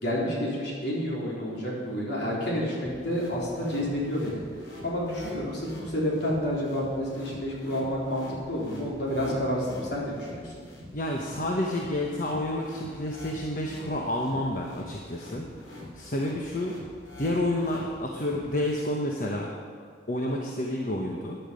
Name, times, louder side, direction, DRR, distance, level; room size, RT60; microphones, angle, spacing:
voice 1, 0.0-4.4 4.8-10.6, equal, 60° left, -4 dB, 3.7 m, -29 dB
sound 1, 2.8-18.8, left 1 dB, 90° left, 3.4 m, -45 dB
voice 2, 10.9-15.5 15.9-16.7 17.2-19.5 20.1-21.4, left 1 dB, 45° left, 0 dB, 1.0 m, -29 dB
14.5 x 10.0 x 5.2 m, 2.1 s
head